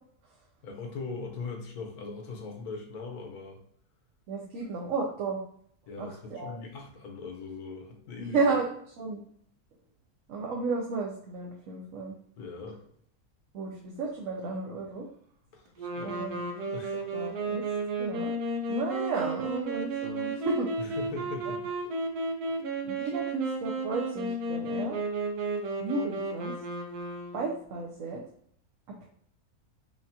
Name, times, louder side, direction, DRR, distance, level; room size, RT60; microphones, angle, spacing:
voice 1, 0.6-3.6 5.9-8.4 12.4-12.8 15.5-16.4 16.7-17.0 20.8-21.6 22.5-22.6, left 4 dB, 85° left, 2 dB, 1.4 m, -40 dB
voice 2, 4.3-5.4 6.0-6.6 8.2-9.2 10.3-12.2 13.5-15.1 16.0-16.4 17.1-17.6 18.0-18.3 18.7-20.7 22.8-25.0 25.8-26.5 27.3-28.2 29.0-29.1, right 3 dB, 70° right, -1 dB, 1.0 m, -33 dB
sound 1, 15.8-27.6, right 2 dB, 90° right, 1.2 m, -33 dB
5.2 x 2.4 x 2.7 m, 0.64 s
omnidirectional pair, 1.6 m